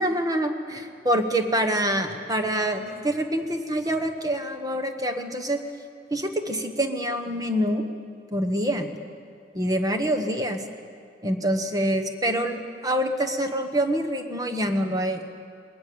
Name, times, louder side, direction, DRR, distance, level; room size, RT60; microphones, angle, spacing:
voice 1, 0.0-5.6 6.1-7.9 8.3-9.0 9.5-10.6 11.2-15.3, right 1 dB, 20° right, 6 dB, 1.3 m, -26 dB
21.5 x 19.0 x 7.0 m, 2.2 s
head